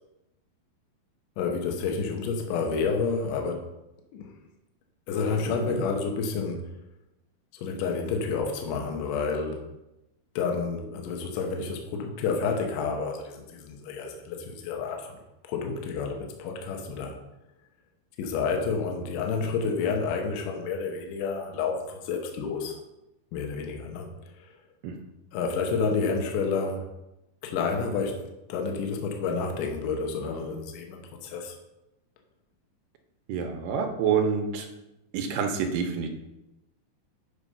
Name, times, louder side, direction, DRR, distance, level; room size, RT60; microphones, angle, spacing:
voice 1, 1.4-3.7 4.1-4.3 5.1-6.7 7.5-9.7 10.4-15.2 15.5-17.2 18.2-22.8 23.3-24.1 24.3-24.5 25.3-26.9 27.4-28.2 28.5-31.5, left 5 dB, 70° left, 3 dB, 2.4 m, -29 dB
voice 2, 33.3-34.7 35.1-36.1, right 6 dB, 75° right, 4 dB, 2.4 m, -27 dB
8.3 x 4.9 x 5.6 m, 0.94 s
omnidirectional pair, 4.3 m